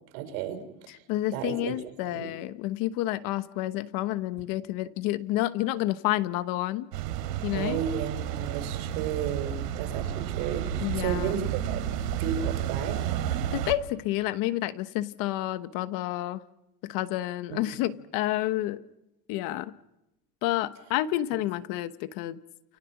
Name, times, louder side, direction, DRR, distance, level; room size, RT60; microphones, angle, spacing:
voice 1, 0.1-0.6 0.9-1.0 1.3-1.7 2.1-2.3 7.5-11.8 12.1-13.0 17.5-17.6, right 8 dB, 60° right, 8 dB, 5.3 m, -33 dB
voice 2, 0.9-6.9 7.4-7.8 10.8-11.3 13.5-16.4 16.8-18.8 19.3-19.7 20.4-22.4, left 15 dB, 45° left, 13 dB, 1.1 m, -29 dB
sound 1, 6.9-13.7, right 10 dB, 80° right, 3.3 m, -31 dB
29.0 x 29.0 x 6.0 m, 0.92 s
supercardioid pair, 150°, 48 cm